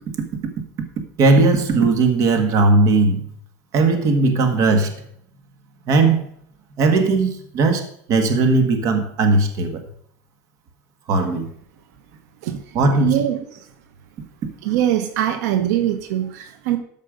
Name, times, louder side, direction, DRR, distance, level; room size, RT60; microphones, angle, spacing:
voice 1, 1.2-3.2 3.7-4.9 5.9-6.2 6.8-9.8 11.1-11.5 12.7-13.2, right 3 dB, 40° right, 6 dB, 1.6 m, -17 dB
voice 2, 13.0-13.4 14.6-16.8, right 11 dB, 80° right, 8 dB, 1.1 m, -22 dB
13.0 x 5.4 x 5.1 m, 0.65 s
cardioid pair, 160°, 9 cm